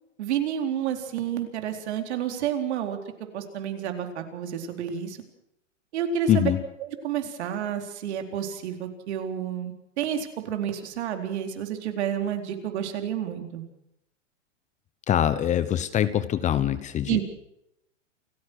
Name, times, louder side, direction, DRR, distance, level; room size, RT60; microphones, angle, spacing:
voice 1, 0.2-3.0 3.3-5.2 5.9-6.5 7.0-13.6 17.1-17.2, right 9 dB, 60° right, 5 dB, 4.2 m, -30 dB
voice 2, 6.3-6.6 15.1-17.2, left 10 dB, 20° left, 14 dB, 1.0 m, -23 dB
28.5 x 14.5 x 6.4 m, 0.80 s
hypercardioid pair, 135°, 37 cm